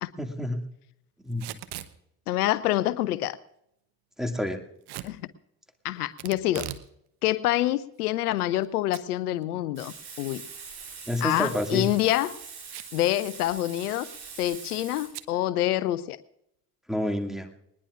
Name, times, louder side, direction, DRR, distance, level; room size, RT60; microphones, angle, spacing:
voice 1, 0.2-0.6 1.2-1.5 4.2-4.6 11.1-11.9 16.9-17.5, left 1 dB, ahead, 5 dB, 2.3 m, -29 dB
Packing tape duct tape / Tearing, 1.3-1.9 4.9-5.1 6.2-6.9 7.3-7.4 8.0-8.7 8.9-9.0 9.4-9.5 11.5-11.7 12.7-13.0 13.3-13.4 13.7-14.0 15.1-15.3, right 13 dB, 55° right, 1.1 m, -39 dB
voice 2, 2.3-3.4 5.0-5.2 5.8-6.7 7.2-10.4 11.2-12.3 12.9-14.1 14.4-16.2, left 14 dB, 80° left, 17 dB, 0.6 m, -26 dB
Frying (food), 9.8-15.1, right 5 dB, 75° right, 5.8 m, -43 dB
20.5 x 20.0 x 2.5 m, 0.78 s
figure-of-eight pair, 45°, 46 cm